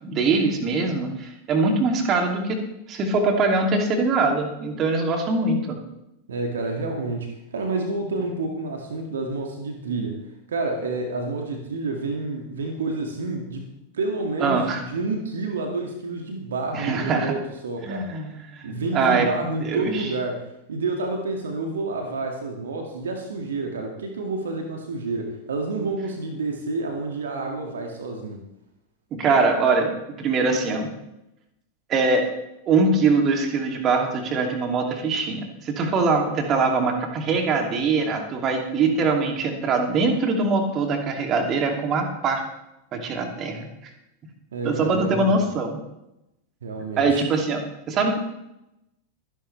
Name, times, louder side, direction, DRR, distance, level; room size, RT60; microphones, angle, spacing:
voice 1, 0.0-2.6 2.9-5.8 14.4-14.8 16.7-17.3 17.8-19.3 19.6-20.1 29.1-30.9 31.9-32.3 32.7-42.4 42.9-43.7 44.6-45.8 47.0-47.6 47.9-48.2, right 3 dB, 30° right, 3 dB, 2.8 m, -23 dB
voice 2, 6.3-10.2 10.5-13.7 13.9-18.1 18.6-28.4 44.5-45.4 46.6-47.2, right 3 dB, 65° right, 3 dB, 2.2 m, -29 dB
24.5 x 11.0 x 3.4 m, 0.88 s
figure-of-eight pair, 90°, 0 cm